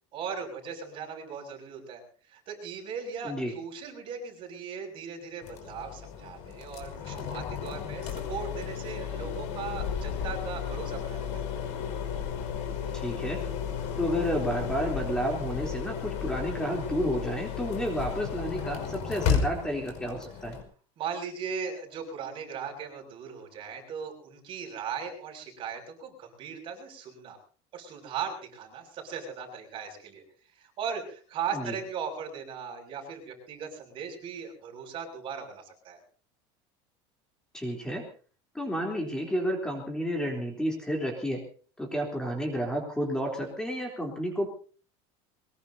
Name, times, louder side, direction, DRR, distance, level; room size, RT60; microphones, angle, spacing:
voice 1, 0.1-2.0 2.3-11.5 21.0-27.4 27.7-30.2 30.6-36.0, right 6 dB, 40° right, 3 dB, 7.1 m, -38 dB
sound 1, 5.4-20.6, left 7 dB, 55° left, 5.4 m, -33 dB
voice 2, 12.9-13.4 14.0-20.6 31.5-31.8 37.5-38.0 38.5-41.4 41.8-44.5, equal, 5° left, 1 dB, 3.7 m, -31 dB
23.0 x 22.0 x 2.9 m, 0.41 s
cardioid pair, 155°, 14 cm